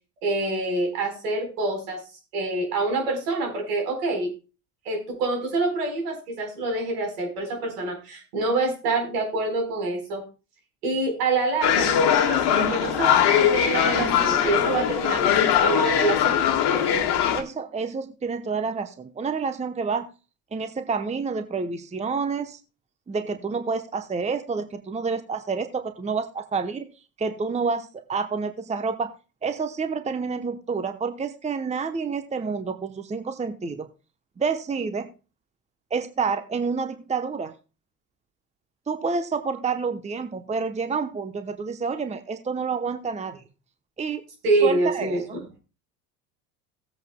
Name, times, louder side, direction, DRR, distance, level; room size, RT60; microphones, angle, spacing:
voice 1, 0.2-2.0 2.3-4.3 4.8-10.2 10.8-16.4 44.4-45.2, right 3 dB, 75° right, 2 dB, 4.3 m, -26 dB
Khatmandu airport lobby, 11.6-17.4, left 9 dB, 55° left, 1.6 m, -21 dB
voice 2, 17.3-20.1 20.5-22.6 23.1-26.9 27.2-29.1 29.4-33.9 34.4-35.1 35.9-37.5 38.9-43.4 44.0-44.2 44.6-45.1, right 5 dB, 15° right, 9 dB, 0.9 m, -28 dB
17.5 x 8.1 x 2.2 m, 0.33 s
hypercardioid pair, 70°, 46 cm